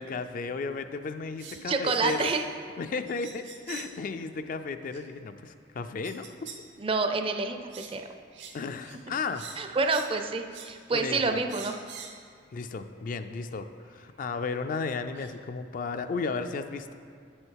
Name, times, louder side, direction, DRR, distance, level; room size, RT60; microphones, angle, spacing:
voice 1, 0.0-2.3 2.8-6.3 8.5-9.5 10.9-11.4 12.5-16.9, left 4 dB, 50° left, 9 dB, 0.3 m, -34 dB
sound 1, 1.4-2.6 3.1-4.0 4.9-5.0 6.0-6.6 7.0-7.2 7.7-8.0 8.3-8.6 8.8-9.0 9.3-10.1 10.5-10.7 11.5-12.2 13.2-13.3 14.5-14.6 15.1-15.3, right 6 dB, 80° right, 0.8 m, -44 dB
voice 2, 1.6-2.5 6.8-7.6 7.9-8.0 9.6-11.7, right 3 dB, 30° right, 6 dB, 0.4 m, -28 dB
7.8 x 6.5 x 4.6 m, 2.2 s
head